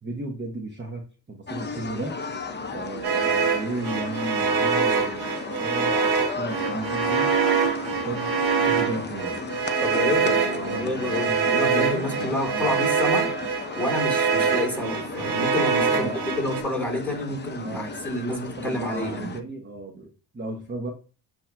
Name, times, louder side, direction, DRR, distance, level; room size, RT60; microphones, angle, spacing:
voice 1, 0.0-2.2 2.7-7.6 7.8-8.3 8.7-9.4 10.1-12.8 15.9-16.2 17.6-18.1 18.6-20.1 20.3-20.9, right 2 dB, 25° right, 1.0 m, -34 dB
sound 1, 1.5-19.4, left 4 dB, 25° left, 0.7 m, -35 dB
sound 2, 3.0-16.6, right 5 dB, 60° right, 1.2 m, -25 dB
voice 2, 9.8-13.3 13.7-19.3, left 1 dB, 5° left, 2.7 m, -29 dB
8.1 x 2.9 x 2.2 m
cardioid pair, 65°, 45 cm